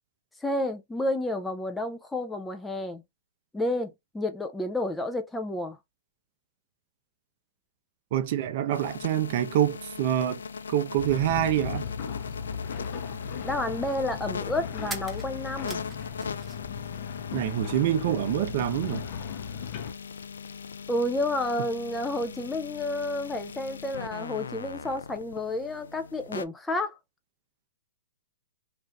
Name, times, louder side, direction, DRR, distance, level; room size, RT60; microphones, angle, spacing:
voice 1, 0.4-3.0 3.5-5.8 13.4-15.8 20.9-26.9, left 1 dB, 5° left, 0.4 m, -30 dB
voice 2, 8.1-10.4 10.7-11.8 17.3-19.0, right 11 dB, 55° right, 0.6 m, -26 dB
sound 1, 8.7-26.4, left 6 dB, 85° left, 0.3 m, -40 dB
sound 2, 11.0-19.9, left 7 dB, 50° left, 0.7 m, -37 dB
sound 3, 14.9-16.8 17.1-17.9, right 3 dB, 10° right, 0.8 m, -43 dB
2.5 x 2.5 x 3.3 m
hypercardioid pair, 130°, 0 cm